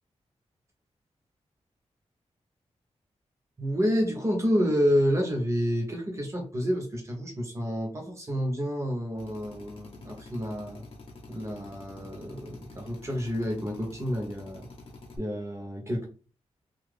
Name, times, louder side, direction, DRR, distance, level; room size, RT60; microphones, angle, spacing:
voice 1, 3.6-10.8 11.3-14.6 15.2-16.0, equal, 25° right, 0 dB, 0.9 m, -29 dB
Drill, 9.2-15.2, left 2 dB, 50° left, 0.8 m, -47 dB
2.9 x 2.4 x 3.3 m, 0.37 s
wide cardioid pair, 165°, 12 cm